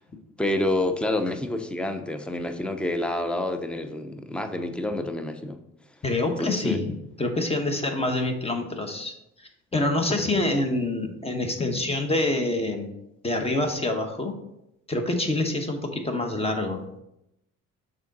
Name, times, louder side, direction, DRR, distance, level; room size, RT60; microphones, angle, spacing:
voice 1, 0.4-5.6 6.2-6.8, left 1 dB, 5° left, 8 dB, 0.5 m, -28 dB
voice 2, 6.0-12.9 13.2-14.3 14.9-16.8, left 2 dB, 20° left, 5 dB, 1.0 m, -26 dB
6.1 x 3.7 x 4.1 m, 0.83 s
cardioid pair, 90°, 30 cm